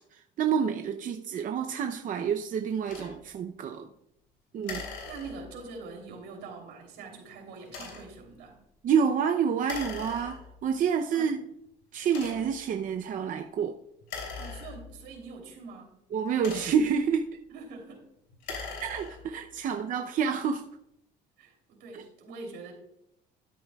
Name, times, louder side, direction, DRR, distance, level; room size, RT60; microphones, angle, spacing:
voice 1, 0.1-3.9 4.5-4.8 8.8-11.4 11.9-13.8 16.1-17.3 18.5-20.6 21.9-22.0, right 7 dB, 50° right, 0.6 m, -28 dB
sound 1, 2.9-3.1 4.6-5.7 7.6-8.2 9.6-10.6 11.3-11.4 12.0-12.7 14.0-15.2 16.1-17.0 18.3-19.4, left 5 dB, 90° left, 3.0 m, -41 dB
voice 2, 4.6-8.6 11.1-11.5 14.4-16.0 17.5-18.1 18.5-18.7 21.4-22.7, right 4 dB, 85° right, 3.1 m, -44 dB
13.0 x 9.2 x 2.3 m
cardioid pair, 110°, 17 cm